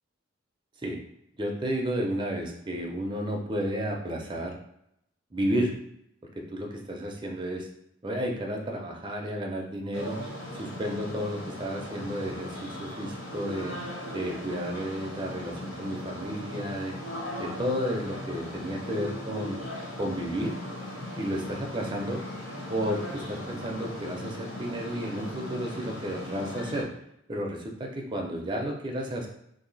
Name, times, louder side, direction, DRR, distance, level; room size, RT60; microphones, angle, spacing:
voice 1, 1.4-4.5 5.3-5.7 6.5-7.7 8.0-10.2 10.5-13.8 14.1-17.0 17.4-19.6 20.0-20.5 21.2-22.2 22.7-26.9 27.3-29.3, equal, 25° right, 0 dB, 0.6 m, -32 dB
sound 1, 9.9-26.8, left 1 dB, 65° left, 1.1 m, -38 dB
2.9 x 2.7 x 4.0 m, 0.76 s
head